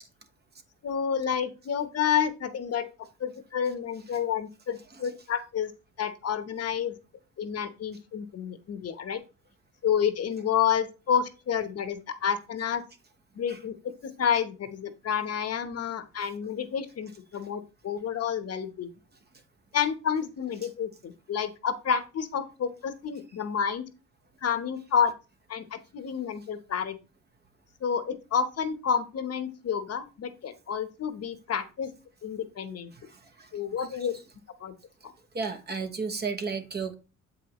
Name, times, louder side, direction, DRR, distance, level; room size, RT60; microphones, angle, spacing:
voice 1, 0.8-2.9 3.2-5.7 6.0-7.0 7.4-9.2 9.8-12.8 13.4-13.7 14.0-18.9 19.7-23.8 24.4-25.1 25.5-26.9 27.8-31.9 32.2-32.9 33.5-34.1 34.6-34.7 35.0-35.1, left 7 dB, 55° left, 9 dB, 1.0 m, -29 dB
voice 2, 35.3-36.9, right 5 dB, 35° right, 7 dB, 1.1 m, -32 dB
7.4 x 5.1 x 3.0 m, 0.31 s
cardioid pair, 90°, 30 cm